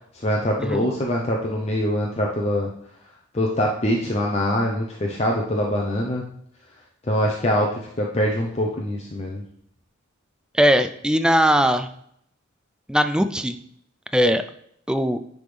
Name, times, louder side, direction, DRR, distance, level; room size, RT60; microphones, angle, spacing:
voice 1, 0.1-2.7 3.3-6.2 7.0-9.4, equal, 30° left, -1 dB, 0.7 m, -23 dB
voice 2, 10.5-11.9 12.9-13.6 14.1-14.4 14.9-15.2, equal, 5° right, 10 dB, 0.3 m, -19 dB
9.9 x 3.6 x 3.3 m, 0.69 s
head